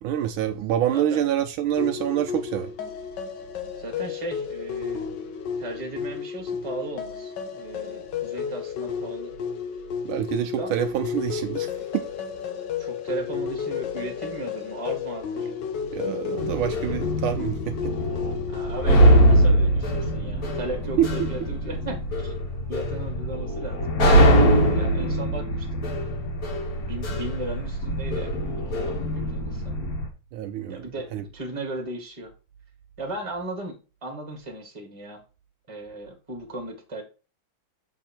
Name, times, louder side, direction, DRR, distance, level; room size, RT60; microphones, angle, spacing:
voice 1, 0.0-2.7 10.0-12.1 15.9-17.7 21.0-21.3 30.3-31.2, right 11 dB, 80° right, 1.4 m, -26 dB
sound 1, 1.8-19.4, left 7 dB, 65° left, 1.3 m, -32 dB
voice 2, 3.8-5.0 5.6-9.3 10.4-10.8 12.8-15.5 18.5-22.3 22.7-23.8 24.5-25.8 26.8-29.8 30.7-32.3 33.0-35.2 35.7-37.0, right 2 dB, 15° right, 1.5 m, -36 dB
sound 2, 16.4-30.1, equal, 50° left, 1.5 m, -22 dB
7.2 x 3.6 x 4.3 m
omnidirectional pair, 2.4 m